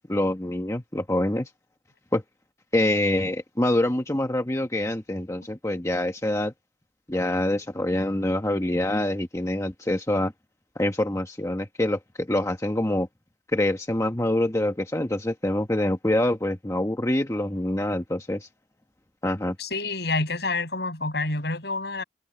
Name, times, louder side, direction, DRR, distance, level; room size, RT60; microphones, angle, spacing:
voice 1, 0.1-1.5 2.1-2.2 2.7-6.5 7.1-10.3 10.8-13.1 13.5-18.5 19.2-19.6, left 1 dB, 15° left, 1.1 m, -25 dB
voice 2, 19.6-22.0, left 3 dB, 65° left, 7.4 m, -28 dB
head